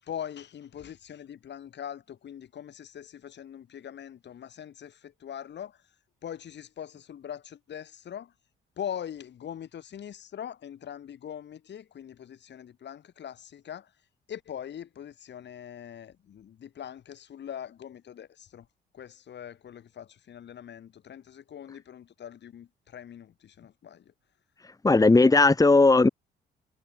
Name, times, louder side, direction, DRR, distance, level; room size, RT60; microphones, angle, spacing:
voice 1, 0.0-5.8 6.2-8.3 8.8-13.9 14.3-18.7 18.9-24.1 25.0-25.3, left 9 dB, 60° left, 5.2 m, -42 dB
voice 2, 24.8-26.1, left 3 dB, 20° left, 1.7 m, -17 dB
cardioid pair, 90°, 20 cm